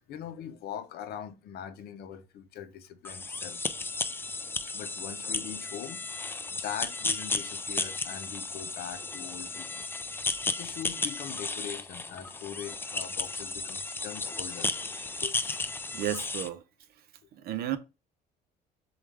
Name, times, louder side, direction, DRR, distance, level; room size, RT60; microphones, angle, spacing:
voice 1, 0.1-3.6 4.7-6.0 6.3-9.9 10.6-14.7 15.2-15.4, left 9 dB, 70° left, 0.7 m, -41 dB
sound 1, 3.0-16.5, left 3 dB, 15° left, 0.3 m, -34 dB
voice 2, 15.9-16.6 17.4-17.8, right 12 dB, 65° right, 0.6 m, -32 dB
6.9 x 2.4 x 3.2 m
cardioid pair, 110°, 17 cm